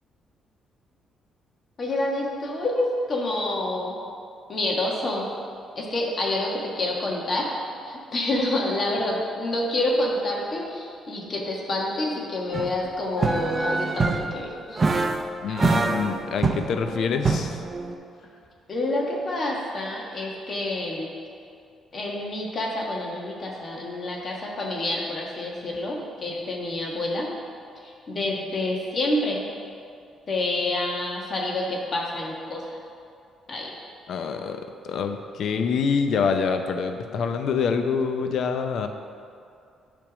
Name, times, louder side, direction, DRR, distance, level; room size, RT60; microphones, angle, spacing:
voice 1, 1.8-4.0 4.5-5.3 5.7-7.5 7.9-14.9 18.7-21.1 21.9-27.3 27.8-29.4 30.3-32.8 33.5-33.7, left 1 dB, 45° left, -2 dB, 1.4 m, -28 dB
sound 1, 12.5-12.7 13.2-14.4 14.8-15.2 15.6-17.9, right 3 dB, 30° right, 0.6 m, -25 dB
voice 2, 15.4-17.6 34.1-38.9, left 5 dB, 70° left, 7 dB, 0.6 m, -26 dB
8.8 x 3.5 x 6.1 m, 2.4 s
cardioid pair, 90°, 0 cm